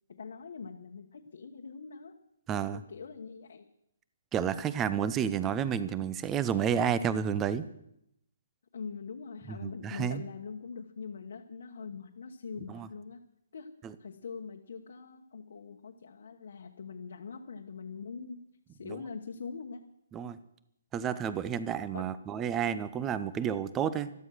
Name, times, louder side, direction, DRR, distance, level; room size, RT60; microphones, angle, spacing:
voice 1, 0.1-2.1 2.7-3.7 8.7-13.2 13.5-13.7 14.0-18.4 18.7-19.9 21.9-22.1, left 5 dB, 55° left, 2 dB, 1.2 m, -43 dB
voice 2, 2.5-2.8 4.3-7.6 9.5-10.2 12.7-12.9 13.8-13.9 18.8-19.0 20.1-20.4 20.9-24.1, right 8 dB, 10° right, 15 dB, 0.5 m, -31 dB
13.0 x 13.0 x 6.3 m, 0.79 s
hypercardioid pair, 175°, 0 cm